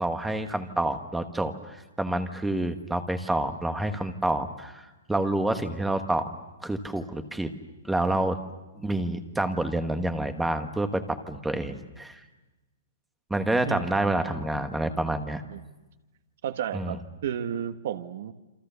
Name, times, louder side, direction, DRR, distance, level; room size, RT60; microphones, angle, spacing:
voice 1, 0.0-6.3 6.6-7.5 7.8-8.4 8.8-12.2 13.3-15.4 16.7-17.0, right 1 dB, 5° right, 8 dB, 1.2 m, -28 dB
voice 2, 16.4-18.3, right 9 dB, 50° right, 10 dB, 1.3 m, -33 dB
28.0 x 26.0 x 6.9 m, 1.1 s
hypercardioid pair, 175°, 0 cm